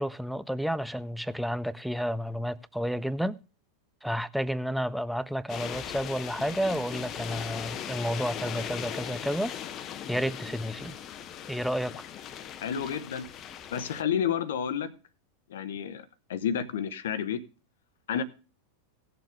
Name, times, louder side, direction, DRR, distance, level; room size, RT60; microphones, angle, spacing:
voice 1, 0.0-3.4 4.0-9.5 10.1-11.0 11.5-11.9, equal, ahead, 0.5 m, -31 dB
sound 1, 5.5-14.0, left 9 dB, 30° left, 0.9 m, -39 dB
voice 2, 12.6-13.2 13.7-14.9 15.5-17.4 18.1-18.2, left 8 dB, 60° left, 1.0 m, -30 dB
17.5 x 6.9 x 3.5 m
figure-of-eight pair, 90°, 0 cm